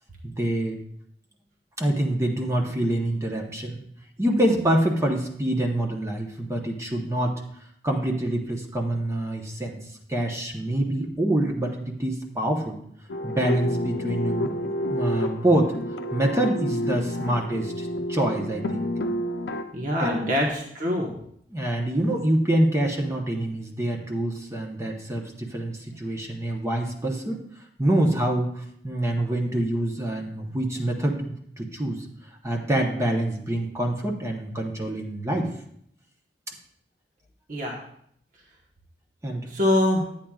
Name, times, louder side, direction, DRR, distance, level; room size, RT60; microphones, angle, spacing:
voice 1, 0.2-0.8 1.8-3.8 4.2-7.3 7.8-9.8 10.1-12.8 13.2-14.5 14.9-15.7 16.1-18.9 20.0-20.3 21.5-27.4 27.8-32.0 32.4-35.5 39.2-39.5, right 1 dB, 15° right, 0 dB, 0.9 m, -26 dB
sound 1, 13.1-19.6, left 1 dB, 80° left, 0.6 m, -29 dB
voice 2, 19.7-21.1 37.5-37.8 39.5-40.0, left 1 dB, 45° right, -1 dB, 1.2 m, -24 dB
11.5 x 8.8 x 2.4 m, 0.69 s
head